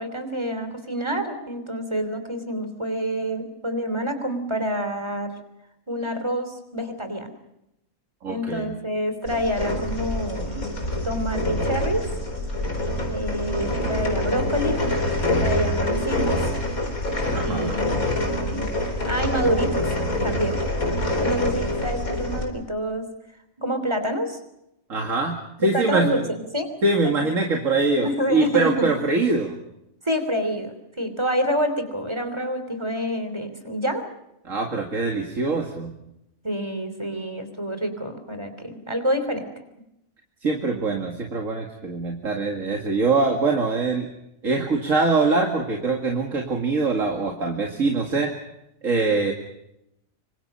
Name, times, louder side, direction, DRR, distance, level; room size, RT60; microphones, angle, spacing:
voice 1, 0.0-5.3 5.9-7.3 8.3-10.7 11.0-12.0 13.1-14.8 15.4-16.4 17.4-18.7 19.0-19.9 20.2-20.6 21.1-23.1 23.6-24.4 25.6-26.2 26.5-26.7 27.0-27.4 28.0-28.9 30.0-34.0 36.4-39.5, equal, 20° right, 8 dB, 3.3 m, -27 dB
voice 2, 8.2-8.7 17.3-17.8 24.9-26.2 26.8-29.6 34.4-35.9 40.4-44.1 44.4-48.3 48.8-49.3, right 3 dB, 65° right, 2 dB, 2.5 m, -23 dB
sound 1, 9.2-22.4, left 1 dB, 85° left, 4.6 m, -25 dB
26.0 x 25.0 x 5.6 m, 0.85 s
omnidirectional pair, 1.5 m